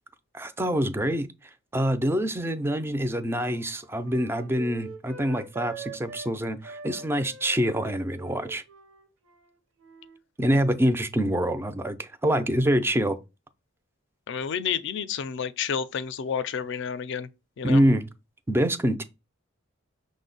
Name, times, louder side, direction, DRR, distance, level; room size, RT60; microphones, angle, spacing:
voice 1, 0.3-1.3 1.7-8.6 10.4-13.2 17.6-18.0 18.5-19.0, equal, 10° right, 0.3 m, -25 dB
Wind instrument woodwind instrument, 2.4-6.3 6.6-10.2 10.5-11.0, right 4 dB, 75° right, 0.7 m, -44 dB
voice 2, 14.3-17.3 17.6-17.8, left 7 dB, 60° left, 0.4 m, -30 dB
5.9 x 2.1 x 3.8 m
head